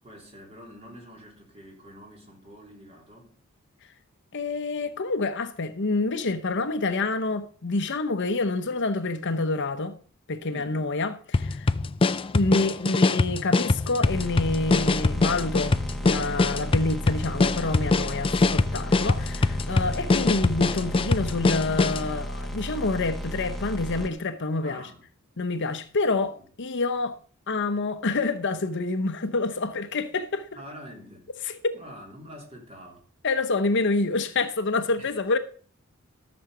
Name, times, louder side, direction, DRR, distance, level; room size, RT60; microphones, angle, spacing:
voice 1, 0.0-3.4 10.5-10.8 24.6-25.0 26.0-26.5 30.5-31.3 31.7-33.0 35.0-35.1, equal, 30° right, 3.3 m, -46 dB
voice 2, 4.3-10.0 10.3-11.7 12.3-15.8 16.0-24.8 25.4-27.1 27.5-30.5 31.6-31.7 33.2-35.4, left 3 dB, 55° left, 0.9 m, -27 dB
honey break mgreel, 11.3-22.1, left 3 dB, 25° left, 0.4 m, -23 dB
sound 1, 14.0-24.1, equal, ahead, 1.2 m, -34 dB
13.5 x 7.2 x 5.0 m
head